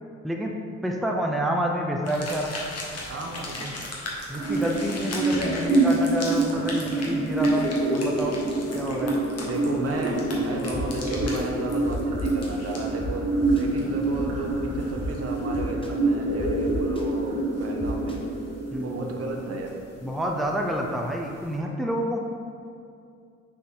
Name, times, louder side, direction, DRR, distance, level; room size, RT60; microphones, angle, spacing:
voice 1, 0.2-0.6 0.8-2.6 3.6-3.8 4.3-8.4 8.7-9.2 18.7-19.1 20.0-22.2, right 1 dB, ahead, 0 dB, 0.6 m, -28 dB
sound 1, 2.0-21.6, left 2 dB, 55° left, 1.4 m, -40 dB
voice 2, 3.1-3.9 9.4-18.2 18.8-19.7, right 3 dB, 50° right, 1 dB, 0.9 m, -34 dB
sound 2, 4.3-20.3, right 2 dB, 90° right, 1.4 m, -26 dB
sound 3, 10.7-10.8 11.1-11.4 11.9-12.5 13.0-13.1 13.4-13.6 14.1-15.1 15.5-15.9 16.4-17.0 17.8-18.1, left 4 dB, 15° left, 1.0 m, -34 dB
6.4 x 4.2 x 3.7 m, 2.3 s
supercardioid pair, 60°, 30 cm